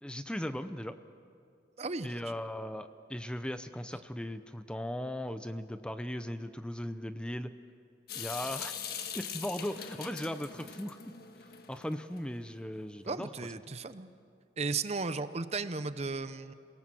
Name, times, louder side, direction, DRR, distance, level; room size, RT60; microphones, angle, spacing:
voice 1, 0.0-1.0 2.0-7.5 8.1-8.7 9.1-11.0 11.7-13.3 13.7-13.8, left 1 dB, 5° left, 10 dB, 0.5 m, -38 dB
voice 2, 1.8-2.1 13.1-14.1 14.6-16.5, right 4 dB, 40° right, 13 dB, 0.7 m, -35 dB
Water tap faucet / Sink (filling or washing) / Drip, 8.1-12.2, left 7 dB, 60° left, 1.5 m, -42 dB
27.0 x 18.5 x 7.6 m, 2.4 s
head